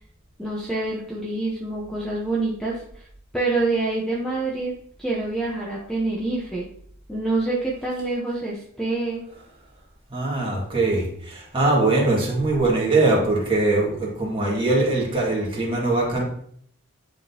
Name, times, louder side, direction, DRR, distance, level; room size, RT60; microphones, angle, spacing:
voice 1, 0.4-3.0 3.3-6.7 7.1-9.2, right 2 dB, 5° left, -5 dB, 0.8 m, -26 dB
voice 2, 10.1-16.2, right 2 dB, 25° right, -3 dB, 1.8 m, -22 dB
10.0 x 3.7 x 2.8 m, 0.64 s
head